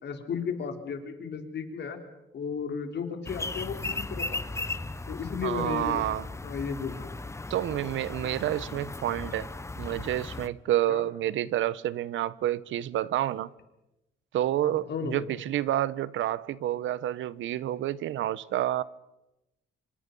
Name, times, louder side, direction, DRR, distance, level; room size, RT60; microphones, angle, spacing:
voice 1, 0.0-2.0 2.3-4.7 5.1-6.0 6.4-7.0 10.9-11.0 14.6-15.3, left 6 dB, 60° left, 3.9 m, -34 dB
sound 1, 3.3-10.5, left 2 dB, 15° left, 1.0 m, -37 dB
voice 2, 5.4-6.2 7.5-9.5 9.8-13.5 14.3-18.8, right 12 dB, 75° right, 0.9 m, -29 dB
26.5 x 25.5 x 5.4 m
cardioid pair, 90°, 20 cm